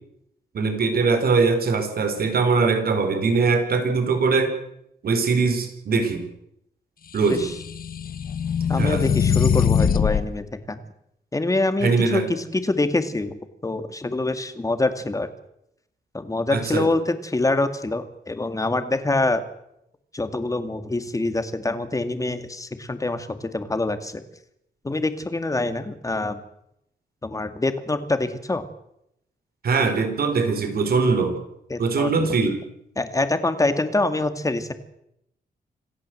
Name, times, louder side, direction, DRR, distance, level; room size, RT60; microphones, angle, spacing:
voice 1, 0.5-4.5 5.0-6.2 7.1-7.5 8.8-9.0 11.8-12.2 16.5-16.9 29.6-31.4 31.8-32.6, right 4 dB, 70° right, 7 dB, 4.4 m, -21 dB
sound 1, 7.3-10.3, left 7 dB, 65° left, 1.5 m, -22 dB
voice 2, 8.7-10.8 11.3-15.3 16.1-19.4 20.1-24.2 24.8-26.4 27.2-28.6 31.7-32.1 33.0-34.7, left 2 dB, 20° left, 9 dB, 2.3 m, -25 dB
27.0 x 15.0 x 7.9 m, 0.79 s
wide cardioid pair, 115°, 16 cm